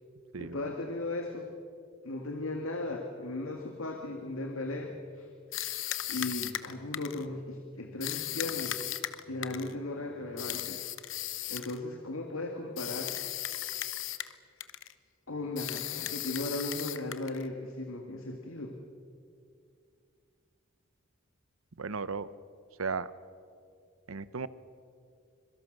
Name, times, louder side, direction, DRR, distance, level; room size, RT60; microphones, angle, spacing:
voice 1, 0.4-1.5 2.0-5.3 6.1-8.8 9.3-10.8 11.5-13.1 15.3-18.8, left 2 dB, 85° left, 3 dB, 2.1 m, -37 dB
sound 1, 5.5-7.3 8.0-9.7 10.4-11.8 12.8-14.4 14.6-14.9 15.6-17.5, left 13 dB, 65° left, 1.0 m, -36 dB
voice 2, 21.8-22.3 22.8-23.1 24.1-24.5, right 5 dB, 90° right, 16 dB, 0.9 m, -35 dB
26.0 x 23.0 x 6.7 m, 2.3 s
head